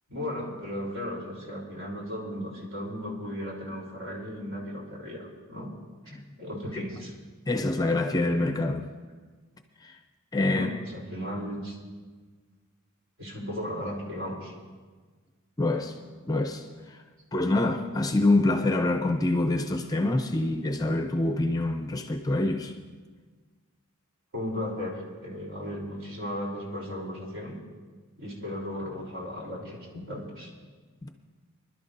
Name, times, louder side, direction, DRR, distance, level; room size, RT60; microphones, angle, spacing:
voice 1, 0.1-5.7 6.4-7.1 10.5-11.7 13.2-14.5 24.3-27.6 28.2-30.5, left 1 dB, 60° right, 3.5 m, -35 dB
voice 2, 7.5-8.9 9.8-10.0 10.3-10.7 15.6-16.0 16.3-17.0 17.3-22.7, left 2 dB, 15° left, 0.6 m, -26 dB
24.5 x 12.0 x 2.6 m
head